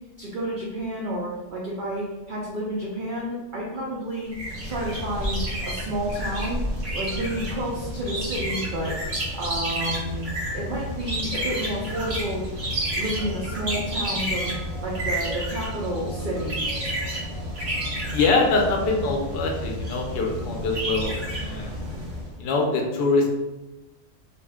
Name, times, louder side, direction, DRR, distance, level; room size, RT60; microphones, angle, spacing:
voice 1, 0.2-4.3 4.6-6.6 6.9-8.9 9.3-10.3 10.5-12.5 13.0-16.6, right 1 dB, 80° right, -4 dB, 0.4 m, -30 dB
sound 1, 4.3-22.3, equal, 45° right, 0.7 m, -30 dB
voice 2, 18.1-21.8 22.4-23.3, left 3 dB, 65° left, 1 dB, 0.6 m, -24 dB
2.4 x 2.1 x 3.4 m, 1.1 s
omnidirectional pair, 1.4 m